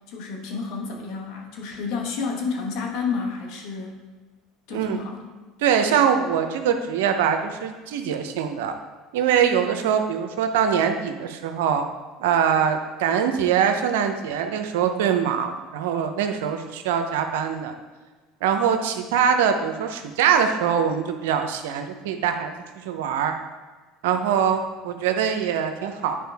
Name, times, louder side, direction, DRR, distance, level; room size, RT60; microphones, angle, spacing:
voice 1, 0.1-4.0 4.7-5.3, left 5 dB, 70° left, 2 dB, 1.5 m, -30 dB
voice 2, 5.6-8.7 9.1-11.8 12.2-17.7 18.4-23.3 24.0-26.2, right 8 dB, 85° right, 6 dB, 0.7 m, -23 dB
10.0 x 4.7 x 3.5 m, 1.3 s
supercardioid pair, 90°, 0 cm